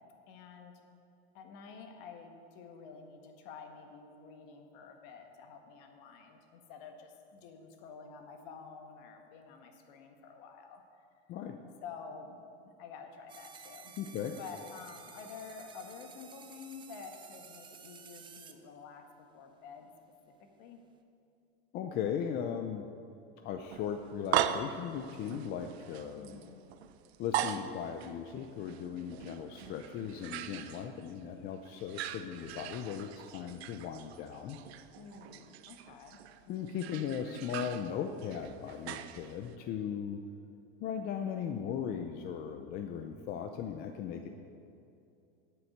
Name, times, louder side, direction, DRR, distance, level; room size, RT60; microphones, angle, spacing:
voice 1, 0.3-0.8 1.3-10.8 11.8-12.4 12.6-13.9 14.3-19.0 19.3-19.9 20.4-20.8 26.1-26.6 34.9-36.2 44.1-44.3, left 5 dB, 55° left, 4 dB, 1.7 m, -49 dB
sound 1, 13.3-18.5, right 7 dB, 15° right, 0.5 m, -53 dB
voice 2, 14.0-14.4 21.7-22.8 23.4-26.4 27.2-34.6 36.5-40.2 40.8-44.3, left 8 dB, 30° left, 5 dB, 0.6 m, -38 dB
sound 2, 23.7-31.3 31.6-39.6, right 11 dB, 75° right, 0.7 m, -40 dB
9.2 x 7.8 x 7.9 m, 2.6 s
supercardioid pair, 140°, 32 cm